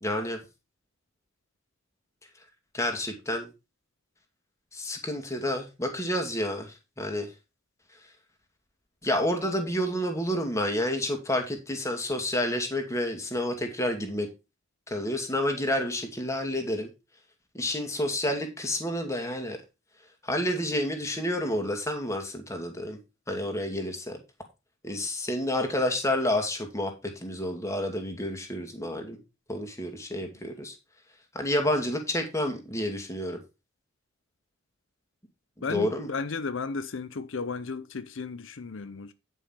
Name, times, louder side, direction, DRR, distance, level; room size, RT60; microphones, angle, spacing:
voice 1, 0.0-0.4 2.7-3.5 4.7-7.3 9.0-14.3 14.9-16.9 17.5-19.6 20.2-23.0 23.3-24.2 24.8-29.2 29.5-30.8 31.3-33.4 35.7-36.1, left 1 dB, 15° left, 2.3 m, -29 dB
voice 2, 35.6-39.1, left 4 dB, 70° left, 0.7 m, -34 dB
10.0 x 5.6 x 5.6 m
head